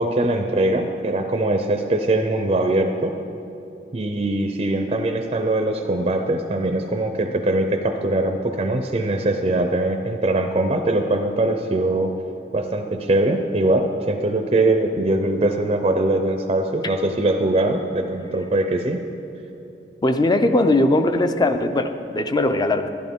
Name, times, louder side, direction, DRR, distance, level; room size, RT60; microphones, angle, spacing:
voice 1, 0.0-3.1 3.9-12.1 12.5-19.0, right 2 dB, 35° right, 5 dB, 0.5 m, -22 dB
voice 2, 20.0-22.9, left 2 dB, 25° left, 8 dB, 0.4 m, -19 dB
11.5 x 11.5 x 3.6 m, 2.8 s
head